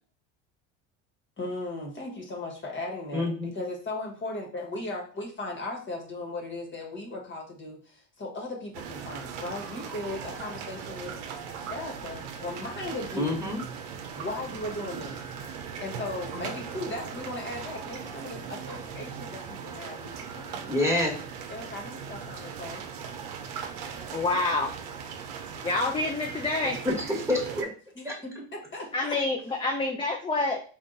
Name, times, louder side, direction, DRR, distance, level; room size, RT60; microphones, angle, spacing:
voice 1, 1.4-11.2 11.7-13.5 14.1-15.2 15.8-20.7 21.5-22.9 27.9-29.2, left 2 dB, 35° left, 1 dB, 1.4 m, -37 dB
voice 2, 3.1-3.5 13.2-13.6 20.7-21.2 26.8-27.7 28.0-28.1, left 1 dB, 10° right, -1 dB, 1.5 m, -27 dB
sound 1, 8.7-27.6, right 7 dB, 75° right, 0.7 m, -39 dB
voice 3, 24.1-24.7 25.6-26.8 28.9-30.6, left 2 dB, 15° left, 1 dB, 0.6 m, -27 dB
3.6 x 2.5 x 3.9 m, 0.42 s
supercardioid pair, 85°, 35 cm